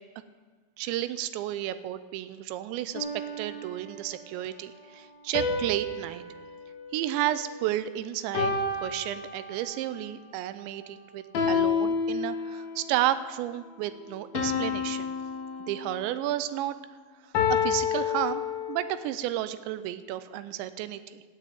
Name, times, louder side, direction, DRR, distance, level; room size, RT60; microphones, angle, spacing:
voice 1, 0.8-3.1 3.4-6.2 6.9-8.5 8.8-15.1 15.7-16.8 17.5-21.2, right 13 dB, 80° right, 13 dB, 2.9 m, -32 dB
sound 1, 2.9-4.2 5.3-7.8 8.3-9.8 11.3-12.8 14.3-16.2 17.3-19.0, left 5 dB, 65° left, 3.0 m, -30 dB
17.5 x 6.7 x 8.7 m, 1.4 s
omnidirectional pair, 5.2 m